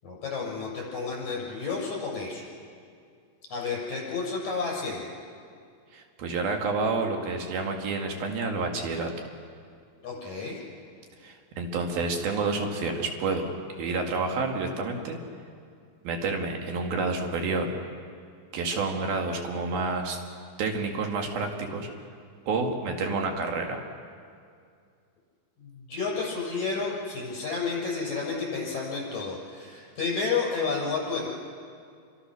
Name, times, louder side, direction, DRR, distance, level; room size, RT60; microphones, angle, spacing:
voice 1, 0.0-2.4 3.5-5.0 10.0-10.6 25.6-31.3, left 4 dB, 50° left, -4 dB, 8.6 m, -31 dB
voice 2, 5.9-9.1 11.2-15.2 16.0-17.7 18.5-20.2 20.6-21.9 22.5-23.9, right 3 dB, 75° right, 2 dB, 3.9 m, -29 dB
29.0 x 25.0 x 6.3 m, 2.3 s
omnidirectional pair, 4.2 m